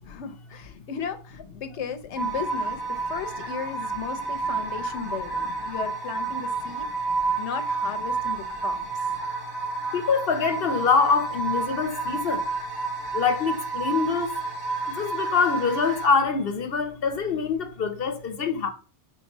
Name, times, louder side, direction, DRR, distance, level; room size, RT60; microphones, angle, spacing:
voice 1, 0.1-6.9 7.4-8.8, left 6 dB, 80° left, 1.1 m, -35 dB
sound 1, 2.2-16.1, right 4 dB, 20° right, 1.2 m, -30 dB
voice 2, 9.9-12.5 13.1-14.3 14.9-18.7, left 5 dB, 60° left, 1.0 m, -24 dB
4.6 x 4.3 x 5.3 m
omnidirectional pair, 1.2 m